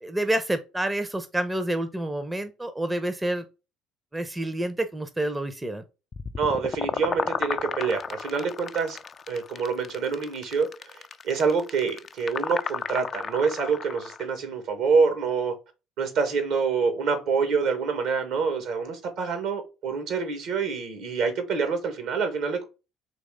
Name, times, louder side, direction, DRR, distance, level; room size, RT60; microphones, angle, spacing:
voice 1, 0.0-3.4 4.1-5.8, right 1 dB, 15° right, 0.7 m, -28 dB
sound 1, 6.1-14.2, left 6 dB, 40° left, 0.4 m, -33 dB
voice 2, 6.4-9.0 9.3-15.5 16.0-22.6, right 5 dB, 65° right, 1.4 m, -26 dB
4.1 x 3.1 x 3.6 m
hypercardioid pair, 60°, 0 cm